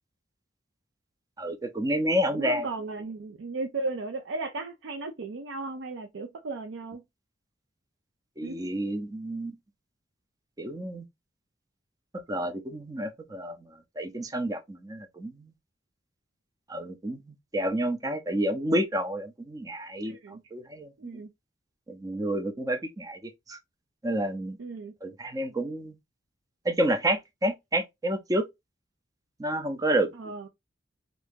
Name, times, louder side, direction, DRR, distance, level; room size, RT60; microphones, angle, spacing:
voice 1, 1.4-2.7 8.4-9.5 10.6-11.0 12.3-15.5 16.7-17.2 17.5-21.1 21.9-23.6 24.0-24.6 25.0-25.9 26.6-28.4 29.4-30.1, right 1 dB, 20° right, 0.4 m, -29 dB
voice 2, 2.3-7.0 8.4-8.6 20.1-20.4 21.0-21.3 24.6-24.9 30.2-30.5, right 3 dB, 90° right, 0.5 m, -35 dB
2.8 x 2.6 x 3.4 m
head